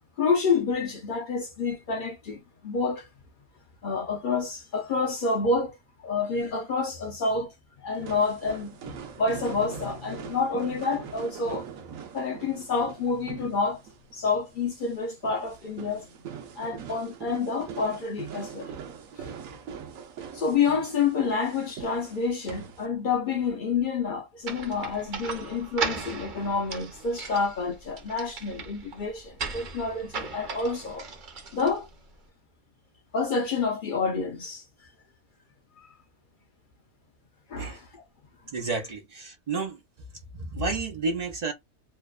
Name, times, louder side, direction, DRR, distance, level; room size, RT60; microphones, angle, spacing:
voice 1, 0.2-3.1 3.8-5.8 6.0-7.5 7.8-11.7 12.1-13.8 14.1-16.1 16.6-18.7 19.2-19.3 20.3-31.1 31.5-31.9 33.1-34.6 35.8-35.9 37.5-37.8, left 4 dB, 65° left, 0.5 m, -28 dB
sound 1, 8.0-22.9, right 7 dB, 75° right, 1.0 m, -42 dB
sound 2, 24.4-32.1, right 4 dB, 50° right, 0.6 m, -37 dB
voice 2, 38.5-39.8 40.3-41.5, right 3 dB, 90° right, 0.3 m, -31 dB
2.9 x 2.0 x 2.3 m
omnidirectional pair, 1.5 m